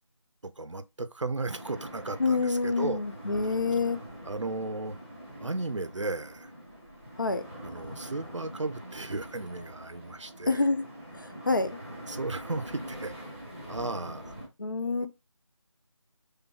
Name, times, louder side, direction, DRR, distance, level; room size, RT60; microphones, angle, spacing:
voice 1, 0.4-3.0 3.4-3.5 4.3-5.0 5.4-6.5 7.6-10.6 12.1-13.1 13.7-14.3, right 2 dB, 65° right, 0.6 m, -35 dB
sound 1, 1.5-14.5, equal, 5° left, 0.9 m, -44 dB
voice 2, 2.2-4.0 7.2-7.4 10.4-10.8 11.2-11.7 14.6-15.1, left 3 dB, 40° left, 0.5 m, -27 dB
5.7 x 3.4 x 2.3 m
figure-of-eight pair, 165°, 16 cm